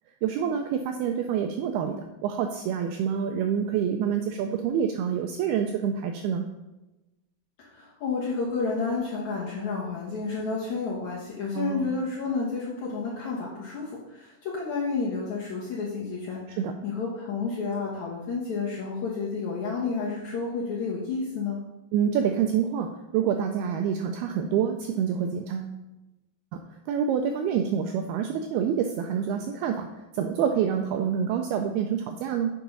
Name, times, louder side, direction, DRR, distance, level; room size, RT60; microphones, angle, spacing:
voice 1, 0.2-6.4 11.5-11.9 16.6-16.7 21.9-25.7 26.5-29.9 30.1-32.5, right 8 dB, 85° right, 5 dB, 2.2 m, -27 dB
voice 2, 7.6-21.6, left 4 dB, 70° left, -5 dB, 1.8 m, -31 dB
8.5 x 5.9 x 5.4 m, 1.0 s
omnidirectional pair, 5.0 m